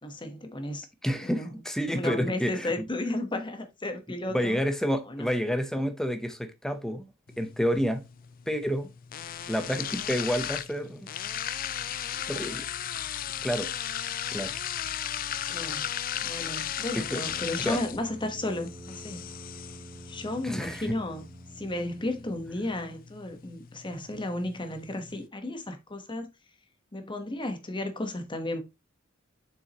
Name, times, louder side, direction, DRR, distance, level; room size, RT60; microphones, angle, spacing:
voice 1, 0.0-0.9 1.2-1.5 1.9-4.6 5.1-5.3 15.5-15.9 16.2-19.2 20.1-21.2 21.6-26.3 26.9-28.6, left 1 dB, 25° left, 1.3 m, -33 dB
voice 2, 1.0-2.9 4.3-7.1 7.4-8.0 8.5-8.9 9.5-11.1 12.3-12.7 13.4-13.7 14.3-14.5 17.1-17.2 17.6-17.8 20.4-21.0, equal, 5° left, 0.9 m, -29 dB
sound 1, 7.3-25.3, left 10 dB, 45° left, 0.4 m, -37 dB
Brass instrument, 17.1-23.0, right 1 dB, 35° right, 1.6 m, -48 dB
7.0 x 6.3 x 3.0 m
head